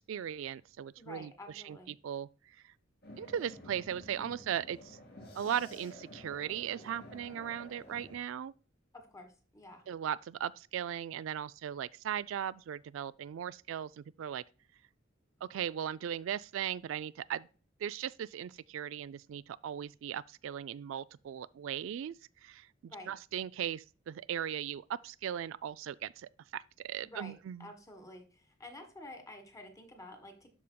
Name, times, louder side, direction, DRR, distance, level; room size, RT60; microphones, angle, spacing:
voice 1, 0.1-1.3 1.6-1.8 2.0-2.3 3.2-5.0 5.3-8.5 9.9-14.4 15.4-17.5 17.8-22.1 22.4-27.7, right 9 dB, 80° right, 0.3 m, -38 dB
voice 2, 1.0-1.9 8.9-9.8 22.9-23.1 27.0-30.5, left 1 dB, 15° left, 1.4 m, -50 dB
sound 1, 3.0-8.2, left 1 dB, 55° left, 2.5 m, -51 dB
12.5 x 4.9 x 2.2 m
head